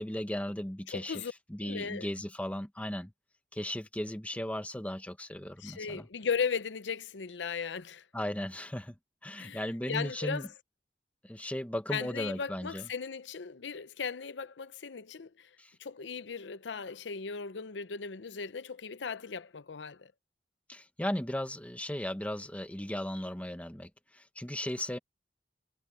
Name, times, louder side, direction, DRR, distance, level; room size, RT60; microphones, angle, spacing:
voice 1, 0.0-3.1 3.5-6.1 8.1-8.9 9.2-10.5 11.2-12.9 15.6-15.7 20.7-25.0, left 1 dB, 10° left, 1.0 m, -36 dB
voice 2, 0.9-1.3 1.6-2.1 5.6-8.0 9.4-10.5 11.9-15.5 15.8-20.1, left 6 dB, 90° left, 0.7 m, -37 dB
head